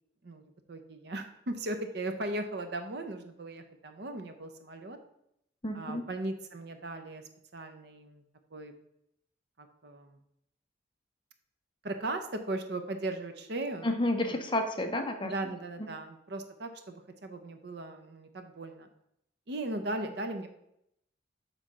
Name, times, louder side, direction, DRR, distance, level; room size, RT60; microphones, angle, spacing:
voice 1, 0.7-5.0 5.7-7.2 7.5-8.2 8.5-8.7 9.6-10.2 11.8-13.9 14.3-14.4 15.2-18.9 19.5-20.5, right 2 dB, 60° right, 7 dB, 0.7 m, -37 dB
voice 2, 5.6-6.1 13.8-15.5, left 1 dB, 25° left, 5 dB, 0.6 m, -31 dB
7.5 x 3.4 x 5.4 m, 0.78 s
head